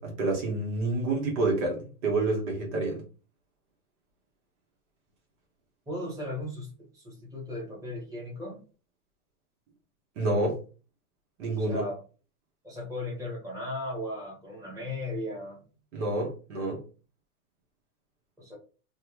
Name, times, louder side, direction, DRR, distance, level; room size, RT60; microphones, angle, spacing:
voice 1, 0.0-3.0 10.2-10.6 11.4-11.9 15.9-16.8, right 2 dB, 50° right, 1.4 m, -28 dB
voice 2, 5.9-8.6 11.6-12.0 12.6-15.6 18.4-18.6, left 1 dB, 5° right, 1.5 m, -36 dB
3.4 x 2.4 x 3.1 m
hypercardioid pair, 130°, 47 cm